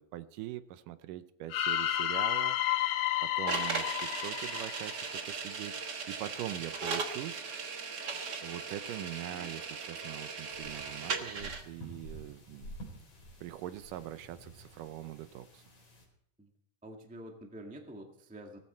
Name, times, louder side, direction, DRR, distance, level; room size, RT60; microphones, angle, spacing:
voice 1, 0.0-2.8 3.2-7.4 8.4-12.7 13.4-15.6, right 13 dB, 80° right, 12 dB, 2.2 m, -43 dB
sound 1, 1.5-5.6, left 12 dB, 70° left, 2.1 m, -32 dB
sound 2, 3.5-11.6, right 5 dB, 45° right, 1.3 m, -38 dB
sound 3, 10.5-16.1, right 1 dB, 55° left, 5.5 m, -50 dB
voice 2, 16.8-18.6, right 1 dB, 10° right, 2 dB, 0.5 m, -47 dB
18.5 x 14.0 x 4.4 m, 0.72 s
omnidirectional pair, 3.9 m